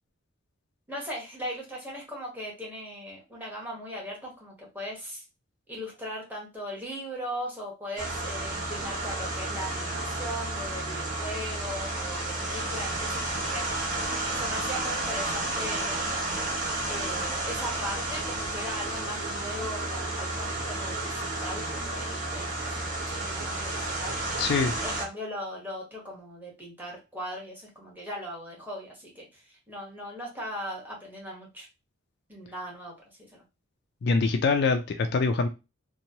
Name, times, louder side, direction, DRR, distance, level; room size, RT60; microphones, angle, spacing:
voice 1, 0.9-5.2 5.7-13.9 14.4-16.1 16.9-24.4 24.8-31.7 32.3-33.4, equal, 10° right, -3 dB, 1.0 m, -39 dB
sound 1, 8.0-25.0, right 2 dB, 40° right, 0.9 m, -31 dB
voice 2, 24.4-24.7 34.0-35.5, left 4 dB, 55° left, 6 dB, 0.3 m, -24 dB
2.9 x 2.2 x 2.7 m, 0.27 s
head